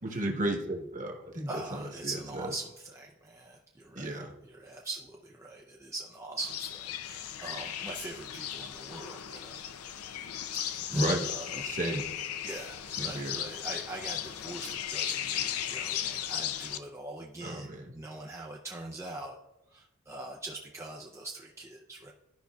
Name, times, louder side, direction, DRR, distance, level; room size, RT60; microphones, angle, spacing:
voice 1, 0.0-2.5 4.0-4.3 10.9-11.3 11.5-12.1 13.0-13.4 17.4-17.8, right 1 dB, 35° right, 2 dB, 1.1 m, -33 dB
voice 2, 1.5-9.6 10.5-11.7 12.4-19.4 19.7-22.1, right 2 dB, 15° right, -1 dB, 0.4 m, -43 dB
sound 1, 6.4-16.8, left 10 dB, 80° left, 0.5 m, -36 dB
12.5 x 5.2 x 2.3 m, 0.98 s
head